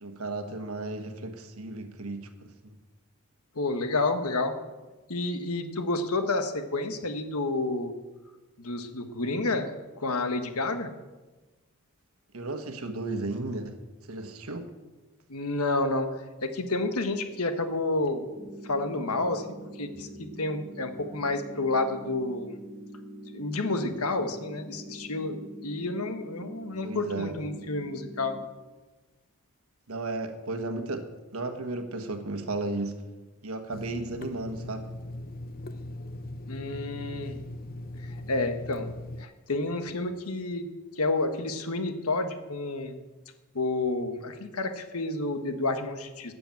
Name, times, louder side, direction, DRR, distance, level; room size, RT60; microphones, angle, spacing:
voice 1, 0.0-2.7 12.3-13.8 14.1-14.7 26.8-27.3 29.9-31.0 31.3-33.0 33.4-34.9, right 2 dB, 70° right, 7 dB, 1.4 m, -34 dB
voice 2, 3.5-4.5 5.1-7.9 8.6-10.9 15.3-16.1 16.4-18.3 18.6-19.4 19.8-22.5 23.3-28.4 36.5-37.4 38.3-38.9 39.2-40.7 41.0-43.0 43.5-46.3, left 2 dB, 75° left, 7 dB, 1.4 m, -30 dB
sound 1, 18.4-28.4, right 1 dB, 10° right, 1.7 m, -44 dB
Water tap faucet / Sink (filling or washing), 33.7-39.3, left 1 dB, 40° left, 0.6 m, -39 dB
13.0 x 6.9 x 8.8 m, 1.2 s
head